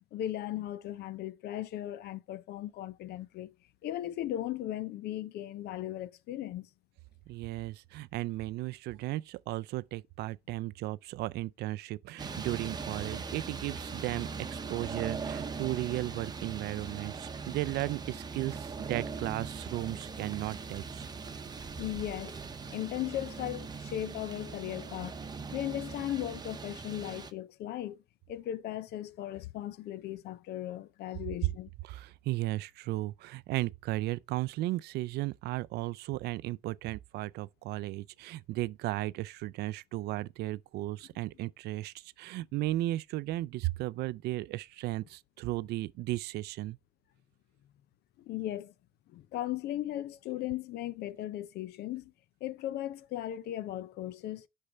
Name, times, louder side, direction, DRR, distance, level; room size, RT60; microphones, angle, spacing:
voice 1, 0.1-3.5 3.8-6.7 21.8-22.4 22.7-25.2 25.5-28.0 28.3-31.7 48.2-48.7 49.1-52.1 52.4-54.5, left 13 dB, 75° left, 0.6 m, -37 dB
voice 2, 7.3-21.1 31.8-46.8, right 17 dB, 75° right, 0.4 m, -35 dB
sound 1, 12.2-27.3, right 5 dB, 25° right, 0.8 m, -40 dB
6.6 x 5.5 x 3.4 m
cardioid pair, 110°, 17 cm